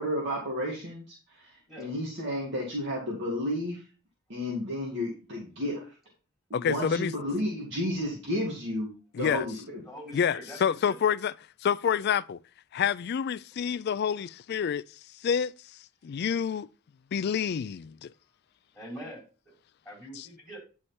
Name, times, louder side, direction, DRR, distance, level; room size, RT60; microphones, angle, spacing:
voice 1, 0.0-1.5 1.8-3.8 4.3-5.9 6.5-8.9 9.2-9.8, left 1 dB, 60° right, 2.3 m, -32 dB
voice 2, 6.5-7.1 9.1-9.5 10.1-11.3 11.6-12.4 12.7-14.8 15.2-15.5 16.0-16.7 17.1-18.1 20.2-20.3, left 7 dB, 55° left, 0.3 m, -28 dB
voice 3, 9.8-11.0 18.7-19.2 19.8-20.6, equal, ahead, 4.4 m, -43 dB
9.9 x 4.8 x 4.3 m
head